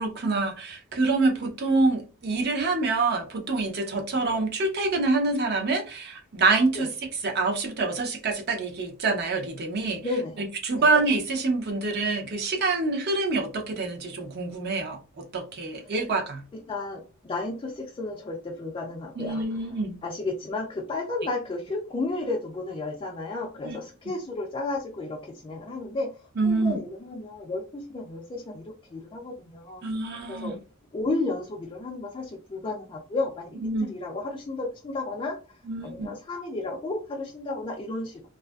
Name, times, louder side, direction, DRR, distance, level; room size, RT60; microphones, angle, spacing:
voice 1, 0.0-10.0 10.4-16.4 19.2-20.0 23.6-23.8 26.4-26.8 29.8-30.6 33.5-33.9 35.6-36.1, right 3 dB, 50° right, 0.6 m, -26 dB
voice 2, 10.0-10.4 10.7-10.8 16.7-19.4 20.0-26.1 26.4-29.8 30.3-30.5 30.9-35.4 35.8-38.2, left 2 dB, 25° left, 0.3 m, -33 dB
2.5 x 2.3 x 2.2 m
head